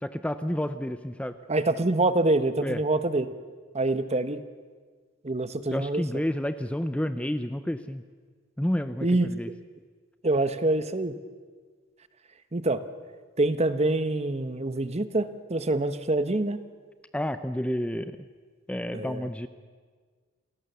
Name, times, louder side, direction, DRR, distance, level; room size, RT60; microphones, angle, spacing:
voice 1, 0.0-1.4 2.6-2.8 5.7-8.0 8.6-9.5 17.1-18.3 18.7-19.5, equal, 5° left, 11 dB, 0.6 m, -30 dB
voice 2, 1.5-3.3 3.7-4.4 5.2-6.0 9.0-9.3 10.2-11.1 12.5-12.8 13.4-16.6 18.9-19.3, right 2 dB, 35° right, 12 dB, 1.1 m, -25 dB
28.5 x 18.0 x 6.9 m, 1.5 s
head